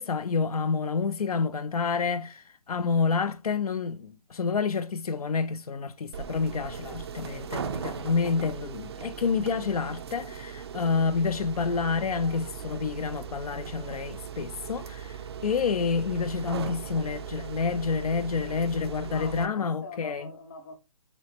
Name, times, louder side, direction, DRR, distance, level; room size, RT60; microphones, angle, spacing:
voice 1, 0.0-20.2, left 5 dB, 85° left, 0.6 m, -28 dB
sound 1, 6.1-19.5, right 7 dB, 45° right, 0.4 m, -39 dB
voice 2, 19.1-20.8, left 3 dB, 30° left, 0.7 m, -43 dB
3.3 x 3.0 x 4.3 m
hypercardioid pair, 160°, 19 cm